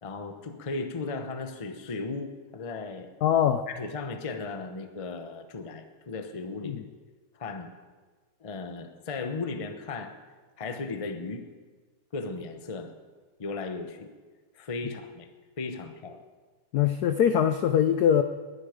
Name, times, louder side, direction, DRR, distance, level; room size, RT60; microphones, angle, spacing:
voice 1, 0.0-3.1 3.7-6.8 7.4-7.7 8.4-10.1 10.6-11.5 12.1-12.9 13.4-14.1 14.5-15.3 15.6-16.2, left 3 dB, 35° left, 7 dB, 0.5 m, -36 dB
voice 2, 3.2-3.6 6.6-6.8 16.7-18.2, left 9 dB, 80° left, 9 dB, 0.8 m, -22 dB
20.0 x 11.5 x 5.1 m, 1.4 s
omnidirectional pair, 2.4 m